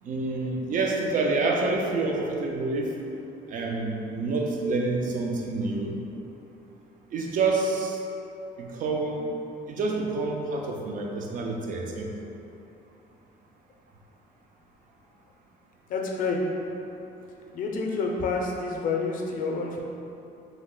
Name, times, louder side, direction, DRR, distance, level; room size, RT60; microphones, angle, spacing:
voice 1, 0.0-2.9 3.5-5.9 7.1-8.0 8.6-9.3 9.7-12.1, right 3 dB, 50° right, 0 dB, 0.5 m, -27 dB
voice 2, 15.9-16.4 17.5-19.8, left 4 dB, 55° left, 0 dB, 0.5 m, -28 dB
3.2 x 2.0 x 3.7 m, 2.9 s
cardioid pair, 110°, 17 cm